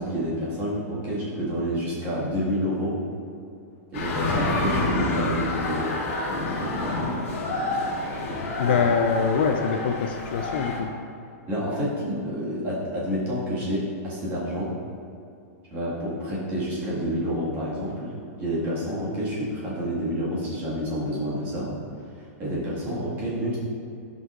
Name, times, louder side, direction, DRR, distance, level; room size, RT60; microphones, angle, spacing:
voice 1, 0.0-3.0 3.9-5.9 6.4-6.6 11.5-14.8 15.7-21.7 22.2-23.6, equal, 20° right, -7 dB, 1.7 m, -28 dB
sound 1, 3.9-10.8, left 2 dB, 60° left, 1.7 m, -28 dB
voice 2, 8.6-10.9, left 6 dB, 40° left, 5 dB, 0.3 m, -24 dB
12.5 x 5.5 x 2.4 m, 2.5 s
supercardioid pair, 180°, 8 cm